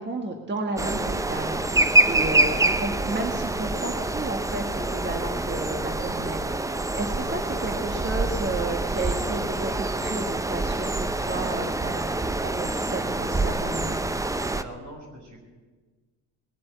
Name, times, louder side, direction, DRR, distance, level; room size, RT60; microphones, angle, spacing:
voice 1, 0.0-1.6 2.1-10.9 11.3-12.0 12.4-14.0, right 2 dB, 25° right, 4 dB, 1.6 m, -32 dB
sound 1, 0.8-14.6, right 2 dB, 10° right, 0.6 m, -26 dB
voice 2, 14.3-15.4, right 1 dB, 70° right, 1 dB, 5.7 m, -43 dB
19.5 x 7.6 x 9.3 m, 1.3 s
supercardioid pair, 80°, 44 cm